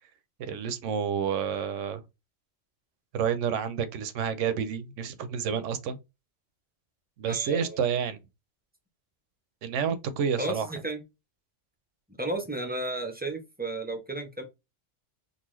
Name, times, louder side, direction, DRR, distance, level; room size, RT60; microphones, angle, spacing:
voice 1, 0.4-2.0 3.1-6.0 7.2-8.2 9.6-10.7, right 7 dB, 75° right, 0.9 m, -29 dB
voice 2, 7.3-7.9 10.4-11.0 12.2-14.4, right 2 dB, 15° right, 0.3 m, -33 dB
3.9 x 2.5 x 3.0 m
omnidirectional pair, 1.3 m